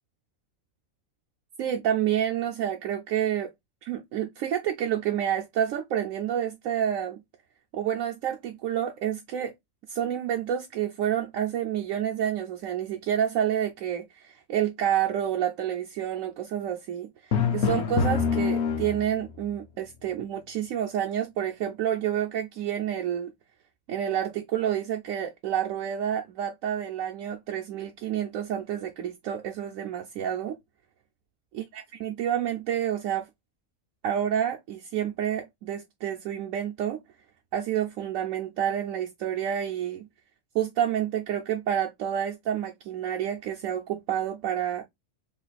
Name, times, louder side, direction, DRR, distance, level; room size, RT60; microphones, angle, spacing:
voice 1, 1.6-3.5 3.8-7.2 7.7-9.5 9.9-23.3 23.9-30.6 31.5-33.3 34.0-37.0 37.5-40.1 40.5-44.8, right 10 dB, 75° right, 1.0 m, -29 dB
Drum, 17.3-19.3, left 6 dB, 60° left, 0.9 m, -25 dB
3.1 x 2.4 x 3.9 m
omnidirectional pair, 1.4 m